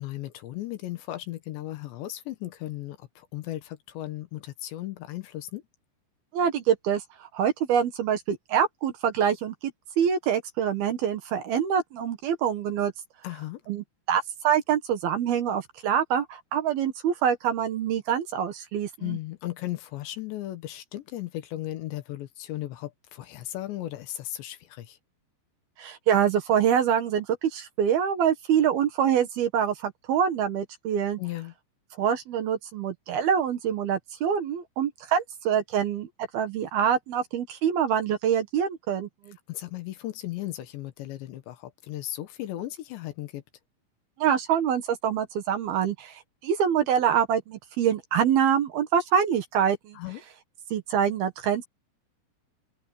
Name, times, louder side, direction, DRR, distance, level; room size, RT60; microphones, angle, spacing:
voice 1, 0.0-5.6 13.2-13.6 19.0-25.0 31.2-31.5 39.5-43.4 49.9-50.2, left 15 dB, 70° left, 3.4 m, -36 dB
voice 2, 6.3-9.7 10.0-12.9 13.7-19.2 25.8-31.2 32.0-39.4 44.2-50.0 50.7-51.7, right 8 dB, 65° right, 3.0 m, -25 dB
omnidirectional pair, 5.5 m